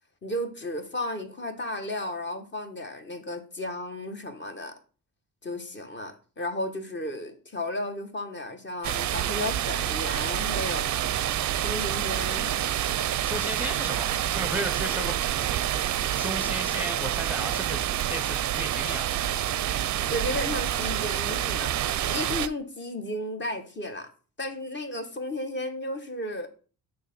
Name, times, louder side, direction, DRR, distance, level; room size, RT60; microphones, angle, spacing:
voice 1, 0.2-4.8 5.4-11.0 11.6-12.8 20.1-21.7 22.1-24.1 24.4-26.5, left 1 dB, 30° left, 1.2 m, -34 dB
sound 1, 8.8-22.5, right 12 dB, 55° right, 0.5 m, -28 dB
voice 2, 13.2-17.8 18.1-19.4, equal, 5° right, 0.8 m, -35 dB
6.4 x 3.8 x 5.9 m
cardioid pair, 100°, 36 cm